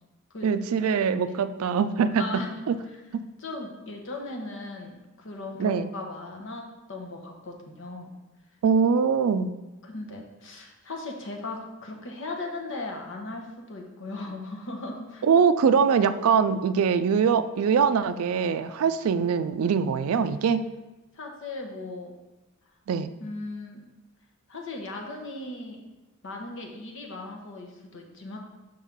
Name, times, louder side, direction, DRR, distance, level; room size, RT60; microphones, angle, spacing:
voice 1, 0.4-2.3 2.7-2.8 3.1-3.2 5.6-5.9 8.6-9.5 15.2-20.7 22.9-23.1, right 6 dB, 75° right, 12 dB, 0.3 m, -23 dB
voice 2, 2.2-2.5 3.4-8.1 9.8-15.3 16.5-16.6 21.2-22.1 23.2-23.8 24.5-25.8 26.2-28.4, left 2 dB, 60° left, 2 dB, 1.0 m, -37 dB
5.5 x 5.3 x 3.6 m, 1.0 s
head